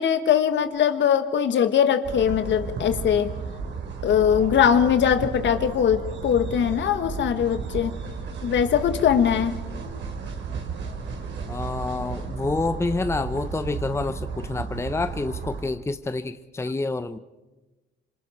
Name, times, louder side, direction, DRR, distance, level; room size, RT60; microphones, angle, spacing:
voice 1, 0.0-3.3 4.0-8.0 8.4-9.6, left 8 dB, 65° left, 1.6 m, -21 dB
sound 1, 2.0-15.6, right 5 dB, 65° right, 3.7 m, -33 dB
voice 2, 11.5-17.2, left 3 dB, 15° left, 0.8 m, -28 dB
27.0 x 26.0 x 4.5 m
cardioid pair, 90°, 20 cm